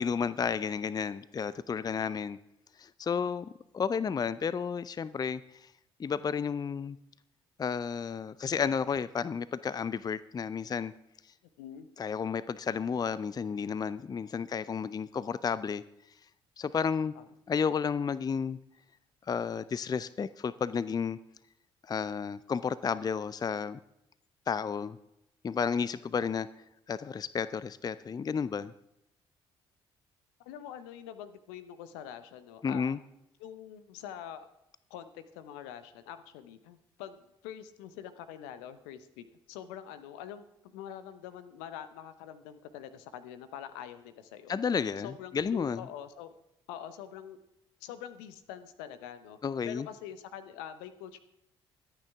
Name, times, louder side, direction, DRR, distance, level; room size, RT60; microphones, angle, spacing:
voice 1, 0.0-2.4 2.8-5.7 6.0-7.0 7.6-10.9 12.0-15.8 16.6-17.1 17.5-18.6 19.3-21.2 21.8-23.8 24.5-25.0 25.4-26.5 26.9-28.7 32.6-33.0 44.5-45.8 49.4-49.9, left 6 dB, 30° left, 17 dB, 0.5 m, -32 dB
voice 2, 11.6-11.9 17.2-17.3 30.4-33.0 33.4-34.5 34.9-40.4 40.7-44.5 45.0-46.3 46.7-47.4 47.8-49.4 49.6-51.2, left 9 dB, 75° left, 11 dB, 0.9 m, -45 dB
24.0 x 9.0 x 3.6 m, 0.82 s
hypercardioid pair, 45°, 14 cm